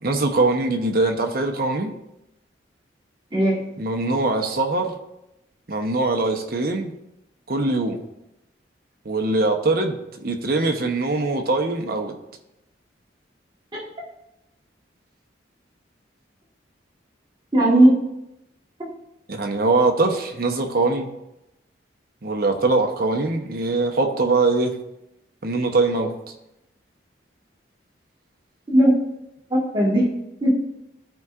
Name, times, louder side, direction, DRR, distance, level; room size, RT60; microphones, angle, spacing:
voice 1, 0.0-1.9 3.8-4.9 5.7-6.9 7.5-8.0 9.0-12.1 19.3-21.1 22.2-24.7 25.4-26.1, right 3 dB, 50° right, 4 dB, 0.8 m, -22 dB
voice 2, 3.3-3.7 13.7-13.8 17.5-18.0 18.8-18.9 28.7-29.0 29.5-30.1 30.4-30.6, right 1 dB, 25° right, -5 dB, 1.5 m, -17 dB
13.5 x 4.7 x 2.4 m, 0.88 s
head